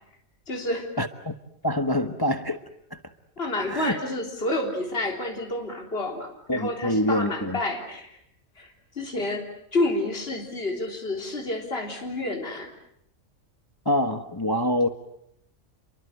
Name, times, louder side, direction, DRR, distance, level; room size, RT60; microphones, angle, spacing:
voice 1, 0.5-0.9 3.4-8.2 8.6-9.5 9.7-12.7, left 2 dB, 45° left, 1 dB, 3.9 m, -29 dB
voice 2, 1.0-1.3 1.6-2.6 2.9-3.0 3.7-4.0 6.5-7.6 13.8-14.9, left 1 dB, 15° left, 8 dB, 1.2 m, -25 dB
30.0 x 23.5 x 8.1 m, 0.74 s
omnidirectional pair, 1.4 m